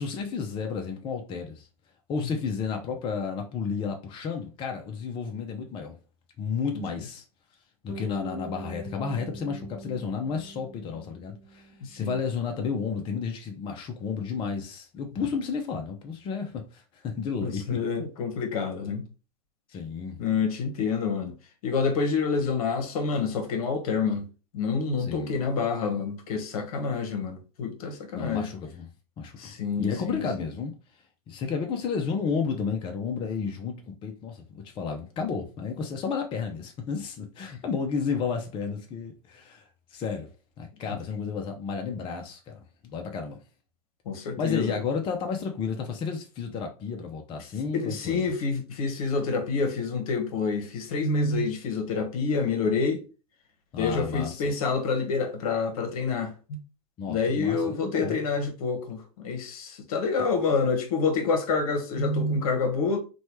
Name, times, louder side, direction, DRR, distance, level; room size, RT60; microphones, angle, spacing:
voice 1, 0.0-1.7 2.1-6.0 6.4-7.2 7.8-17.8 19.7-20.2 25.0-25.4 28.1-28.9 29.2-30.7 31.3-39.6 39.9-40.3 40.6-43.4 44.4-48.3 53.7-54.4 57.0-58.2 60.2-60.3, left 5 dB, 25° left, 0.5 m, -32 dB
Bass guitar, 7.9-12.1, right 3 dB, 20° right, 0.8 m, -43 dB
voice 2, 11.8-12.2 17.4-19.0 20.2-21.4 21.6-24.3 24.5-28.5 29.4-30.2 44.1-44.8 47.7-53.0 53.7-56.6 57.1-63.0, left 4 dB, 65° left, 0.9 m, -27 dB
3.0 x 2.2 x 2.9 m
hypercardioid pair, 105°, 20 cm